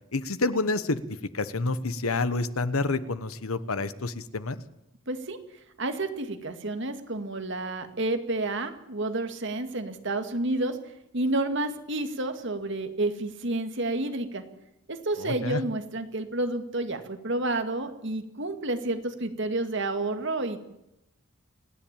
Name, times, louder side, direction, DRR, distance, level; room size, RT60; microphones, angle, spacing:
voice 1, 0.1-1.0 1.3-4.6 15.2-15.6, left 3 dB, 85° left, 14 dB, 1.2 m, -28 dB
voice 2, 5.1-5.4 5.8-10.8 11.1-14.4 14.9-20.6, right 2 dB, 60° right, 7 dB, 2.0 m, -30 dB
28.0 x 10.5 x 8.9 m, 0.86 s
head